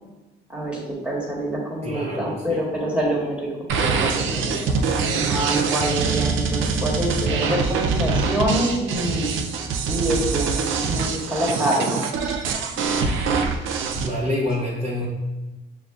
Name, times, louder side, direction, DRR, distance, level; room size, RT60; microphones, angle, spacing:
voice 1, 0.5-3.5 3.7-4.6 4.9-9.3 9.8-12.0 12.3-12.4, right 1 dB, 5° right, -3 dB, 1.3 m, -26 dB
voice 2, 1.8-2.6 14.0-15.1, left 1 dB, 35° right, -5 dB, 0.8 m, -27 dB
sound 1, 3.7-14.1, right 5 dB, 80° right, 0.4 m, -24 dB
6.4 x 2.4 x 2.3 m, 1.1 s
cardioid pair, 90°, 20 cm